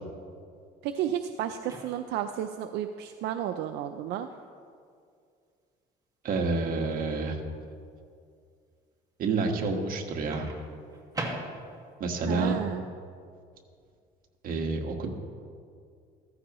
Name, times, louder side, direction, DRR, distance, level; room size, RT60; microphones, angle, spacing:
voice 1, 0.8-4.3 12.3-12.8, right 10 dB, 80° right, 7 dB, 0.5 m, -32 dB
Microwave oven, 1.6-2.3 4.3-4.5 10.3-11.9, right 2 dB, 20° right, 1.9 m, -39 dB
voice 2, 6.2-7.4 9.2-10.5 12.0-12.6 14.4-15.1, right 3 dB, 55° right, 2 dB, 1.6 m, -28 dB
15.0 x 14.0 x 3.1 m, 2.3 s
cardioid pair, 110°, 17 cm